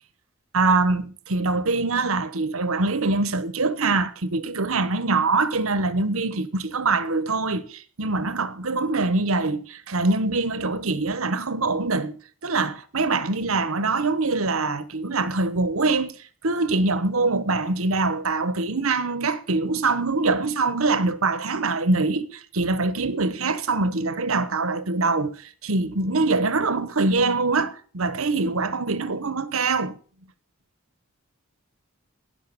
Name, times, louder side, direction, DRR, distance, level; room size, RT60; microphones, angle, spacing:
voice 1, 0.5-12.2 12.4-16.1 16.4-30.0, right 3 dB, 80° right, 1.2 m, -24 dB
17.0 x 5.9 x 6.9 m
head